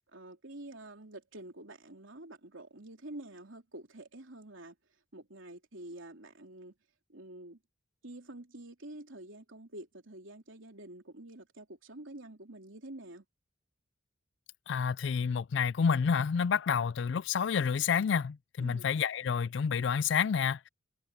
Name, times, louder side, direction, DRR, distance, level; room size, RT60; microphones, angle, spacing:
voice 1, 0.0-4.8 5.1-6.7 7.1-7.6 8.0-13.2 18.6-18.9, right 1 dB, 80° right, 3.3 m, -48 dB
voice 2, 14.7-20.7, left 6 dB, 65° left, 0.4 m, -29 dB
head